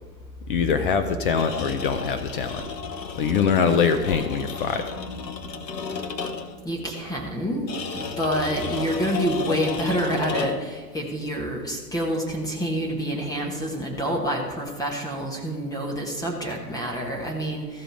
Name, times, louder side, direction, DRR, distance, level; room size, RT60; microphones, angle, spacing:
voice 1, 0.5-2.6 3.2-4.9, left 6 dB, 35° left, 8 dB, 0.6 m, -23 dB
sound 1, 1.3-6.6 7.7-10.8, left 5 dB, 80° left, 1.2 m, -33 dB
voice 2, 6.6-7.7 7.9-17.8, equal, 5° left, 0 dB, 1.1 m, -27 dB
14.0 x 5.0 x 6.2 m, 1.3 s
hypercardioid pair, 125°, 49 cm